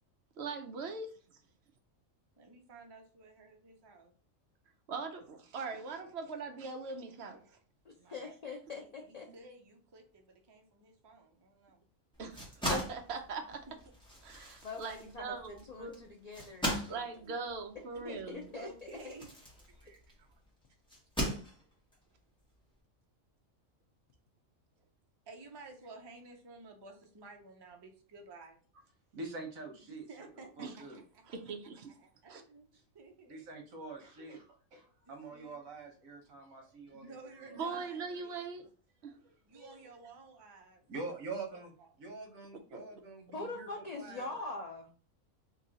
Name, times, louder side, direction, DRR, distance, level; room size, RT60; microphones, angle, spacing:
voice 1, 0.4-1.1 4.9-7.4 12.2-12.4 12.7-13.6 14.2-16.0 16.9-18.4 30.6-30.7 31.3-31.9 32.3-32.4 37.5-38.6 39.0-39.1 42.7-42.9, right 4 dB, 60° right, 0.8 m, -40 dB
voice 2, 2.4-4.1 8.0-8.3 8.7-8.9 9.3-11.8 13.7-13.8 18.5-19.3 19.7-20.3 25.3-28.6 29.8-31.2 32.0-33.4 35.1-35.6 36.9-38.4 39.5-40.8 41.5-41.9, right 3 dB, 35° right, 0.4 m, -53 dB
voice 3, 7.8-9.3 14.6-17.1 18.0-19.1 43.3-44.9, left 3 dB, 75° left, 0.3 m, -43 dB
sound 1, 12.1-20.2 20.9-21.9, equal, 5° left, 1.0 m, -39 dB
voice 4, 29.1-30.1 30.6-31.0 33.3-34.4 34.7-37.6 39.5-39.8 40.9-41.7 42.0-43.7 43.9-44.3, right 3 dB, 85° right, 1.3 m, -45 dB
3.1 x 2.6 x 3.9 m
omnidirectional pair, 1.4 m